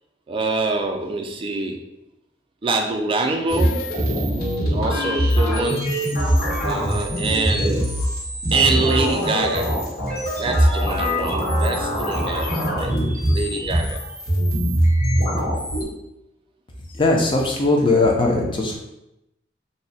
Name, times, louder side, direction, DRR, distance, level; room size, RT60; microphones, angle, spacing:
voice 1, 0.3-1.8 2.6-3.9 4.7-5.9 6.6-7.9 8.5-9.8 10.4-12.9 13.3-14.0, right 3 dB, 30° right, 3 dB, 0.4 m, -25 dB
sound 1, 3.5-15.8, equal, 55° left, 1.4 m, -22 dB
voice 2, 17.0-18.8, left 2 dB, 30° left, 0 dB, 0.5 m, -19 dB
2.7 x 2.1 x 4.0 m, 0.88 s
head